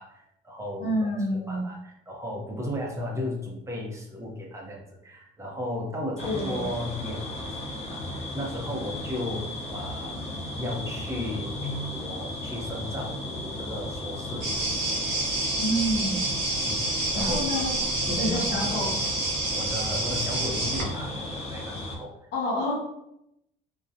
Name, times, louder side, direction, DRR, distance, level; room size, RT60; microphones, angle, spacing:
voice 1, 0.0-10.3 10.6-14.5 16.6-17.5 18.1-19.0 19.6-22.1, left 1 dB, 15° right, -2 dB, 0.7 m, -35 dB
voice 2, 0.8-1.6 6.2-6.6 15.6-16.2 17.1-17.7 18.1-19.0 22.3-22.7, equal, 70° left, -3 dB, 1.1 m, -28 dB
sound 1, 6.2-22.0, left 1 dB, 35° left, 0.6 m, -35 dB
sound 2, 14.4-20.8, right 2 dB, 85° right, 0.8 m, -28 dB
2.6 x 2.2 x 2.5 m, 0.80 s
cardioid pair, 110°, 17 cm